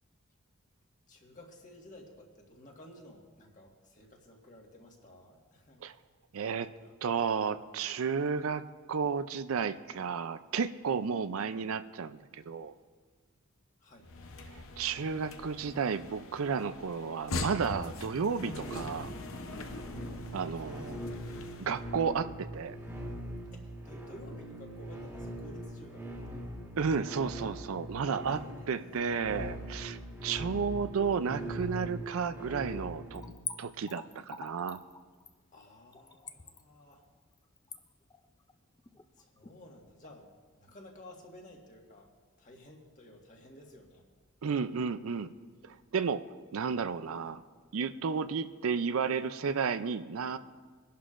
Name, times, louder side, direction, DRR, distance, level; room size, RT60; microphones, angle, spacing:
voice 1, 1.1-5.9 6.8-6.9 13.8-14.1 23.5-26.4 28.2-28.9 30.4-30.6 35.5-37.0 39.2-40.3 40.6-42.1 42.4-44.1, left 1 dB, 35° left, 0 dB, 1.6 m, -53 dB
voice 2, 6.3-6.7 7.0-8.6 8.9-12.7 14.5-19.1 20.3-21.0 21.6-22.8 26.8-28.4 28.7-33.2 33.6-34.8 44.4-45.3 45.6-46.2 46.5-47.4 47.7-50.4, right 6 dB, 70° right, 12 dB, 0.5 m, -32 dB
sound 1, 14.0-21.9, left 2 dB, 65° left, 0.8 m, -42 dB
sound 2, 18.5-33.3, right 1 dB, 10° right, 1.6 m, -42 dB
Splash splatter / Trickle dribble, 33.1-39.6 39.9-40.0, left 5 dB, 15° left, 0.5 m, -45 dB
22.0 x 11.0 x 2.5 m, 1.5 s
head